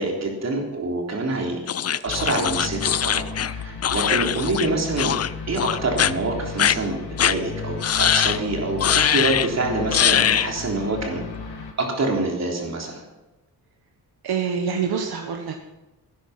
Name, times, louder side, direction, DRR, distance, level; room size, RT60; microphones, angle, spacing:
voice 1, 0.0-1.6 2.0-5.1 5.5-7.0 7.2-11.2 11.8-13.0, right 2 dB, 45° right, 0 dB, 3.6 m, -26 dB
sound 1, 1.7-4.7 5.0-5.3 5.6-6.1 6.6-6.8 7.2-7.4 7.8-8.4 8.8-9.5 9.9-10.5, left 9 dB, 40° left, 0.5 m, -21 dB
sound 2, 2.1-11.7, left 5 dB, 80° left, 2.4 m, -34 dB
voice 2, 14.2-15.6, right 6 dB, 80° right, 3 dB, 1.4 m, -26 dB
17.0 x 10.5 x 6.0 m, 1.1 s
wide cardioid pair, 150°, 38 cm